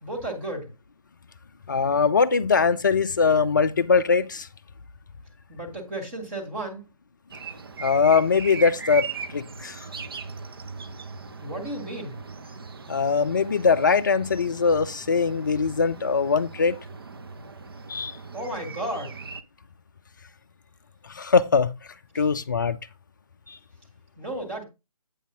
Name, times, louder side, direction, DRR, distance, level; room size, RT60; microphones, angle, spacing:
voice 1, 0.0-0.7 5.5-6.8 11.4-12.2 18.3-19.2 24.2-24.6, right 1 dB, 20° right, 1.9 m, -33 dB
voice 2, 1.7-4.5 7.8-9.9 12.9-16.8 17.9-18.2 21.1-21.7 22.1-22.8 23.5-23.6, left 5 dB, 35° left, 0.5 m, -22 dB
sound 1, 7.3-19.4, right 5 dB, 40° right, 0.7 m, -39 dB
8.4 x 6.9 x 3.7 m
figure-of-eight pair, 155°, 19 cm